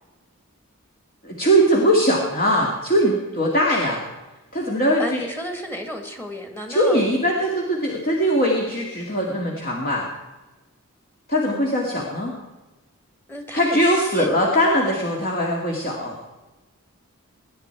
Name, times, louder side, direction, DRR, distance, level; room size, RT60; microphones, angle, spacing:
voice 1, 1.2-4.0 4.5-5.2 6.7-10.1 11.3-12.3 13.5-16.2, equal, 40° left, -1 dB, 2.3 m, -21 dB
voice 2, 5.0-7.0 13.3-14.4, equal, 10° left, 5 dB, 2.0 m, -32 dB
20.5 x 10.5 x 4.6 m, 1.1 s
head